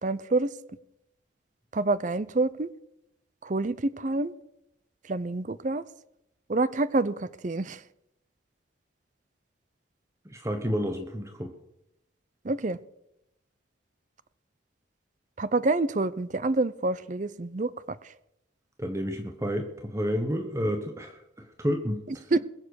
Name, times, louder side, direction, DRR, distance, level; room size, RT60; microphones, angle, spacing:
voice 1, 0.0-0.5 1.7-2.7 3.4-4.3 5.1-5.8 6.5-7.8 12.4-12.8 15.4-17.7 22.3-22.5, right 2 dB, 40° right, 16 dB, 0.6 m, -27 dB
voice 2, 10.2-11.5 18.8-22.3, equal, 15° right, 5 dB, 1.0 m, -30 dB
21.5 x 7.3 x 6.4 m, 0.82 s
head